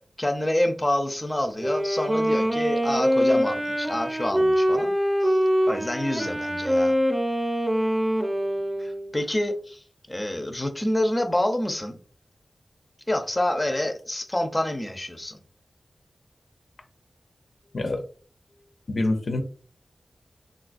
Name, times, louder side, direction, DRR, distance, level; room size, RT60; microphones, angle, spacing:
voice 1, 0.2-4.9 5.2-5.4 5.7-6.9 8.8-12.0 13.1-15.4, left 1 dB, 20° left, 0.5 m, -27 dB
Wind instrument woodwind instrument, 1.5-9.2, equal, 20° right, 0.7 m, -24 dB
voice 2, 18.9-19.4, left 2 dB, 75° left, 0.5 m, -25 dB
3.6 x 2.3 x 2.4 m
wide cardioid pair, 75°, 0 cm